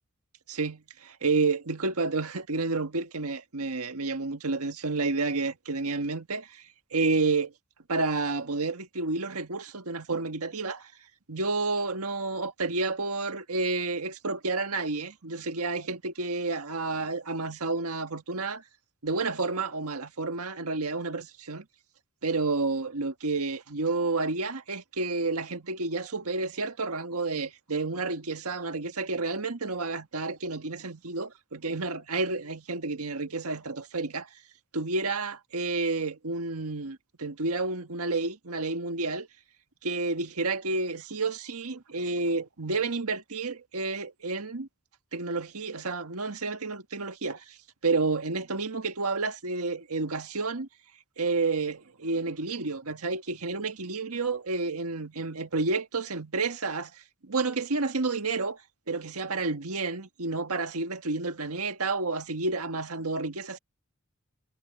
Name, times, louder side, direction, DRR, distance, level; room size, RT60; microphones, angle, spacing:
voice 1, 0.5-7.5 7.9-10.9 11.3-18.6 19.0-21.7 22.2-34.3 34.7-39.3 39.8-44.7 45.1-47.6 47.8-50.7 51.2-58.6 58.9-63.6, right 3 dB, 90° right, 1.7 m, -30 dB
head